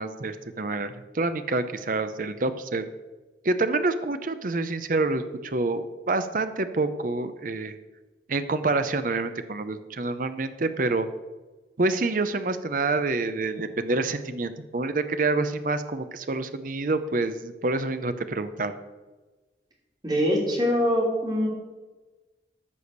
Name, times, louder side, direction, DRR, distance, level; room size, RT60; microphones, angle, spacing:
voice 1, 0.0-2.8 3.4-7.7 8.3-11.1 11.8-18.7, right 3 dB, 50° right, 11 dB, 0.7 m, -27 dB
voice 2, 20.0-21.5, equal, 25° right, -2 dB, 3.1 m, -23 dB
14.0 x 4.9 x 6.6 m, 1.2 s
head